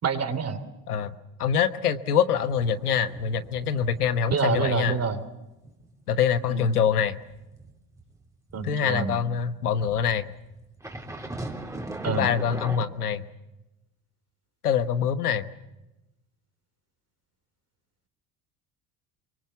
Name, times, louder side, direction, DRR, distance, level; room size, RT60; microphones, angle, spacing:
voice 1, 0.0-0.6 4.3-5.2 6.5-6.6 8.5-9.1 12.0-12.3, right 6 dB, 35° right, 9 dB, 3.3 m, -27 dB
voice 2, 0.9-5.0 6.1-7.2 8.6-10.3 12.1-13.3 14.6-15.4, left 7 dB, 90° left, 13 dB, 1.2 m, -25 dB
sound 1, 2.3-4.2 4.6-4.8 5.2-8.8 9.8-12.8, right 2 dB, 5° right, 3.4 m, -40 dB
24.0 x 23.5 x 7.1 m, 0.96 s
hypercardioid pair, 70°, 44 cm